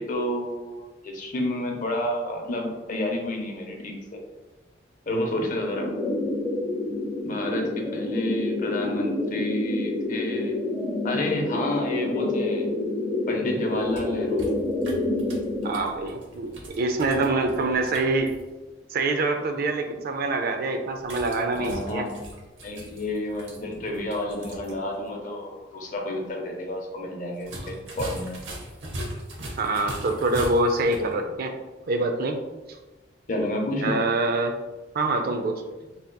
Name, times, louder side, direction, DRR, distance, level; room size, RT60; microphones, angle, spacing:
voice 1, 0.0-4.2 5.1-5.9 7.2-10.6 11.0-12.7 13.3-14.5 21.5-22.1 22.6-28.3 33.3-33.9, left 1 dB, 45° left, 1 dB, 0.6 m, -30 dB
sound 1, 5.7-15.7, left 2 dB, 15° right, 1.0 m, -28 dB
sound 2, 13.7-18.4 21.0-24.8 25.1-25.2 27.4-31.1, right 1 dB, 85° right, 0.7 m, -40 dB
voice 2, 15.6-18.3 18.9-22.1 29.6-31.5 31.9-32.4 33.8-34.6 34.9-35.6, right 2 dB, 55° right, 5 dB, 0.4 m, -25 dB
3.8 x 2.8 x 2.2 m, 1.2 s
head